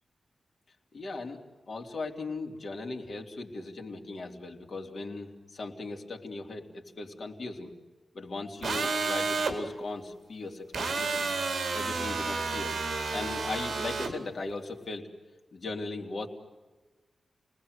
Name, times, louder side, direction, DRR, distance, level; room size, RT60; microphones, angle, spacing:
voice 1, 0.9-1.4 1.7-7.7 8.1-11.3 11.7-12.8 13.1-15.1 15.5-16.3, left 3 dB, 50° left, 1 dB, 3.4 m, -38 dB
sound 1, 8.6-9.5 10.7-14.1, right 4 dB, 60° right, 4.1 m, -31 dB
29.0 x 20.0 x 8.2 m, 1.2 s
wide cardioid pair, 150°, 0 cm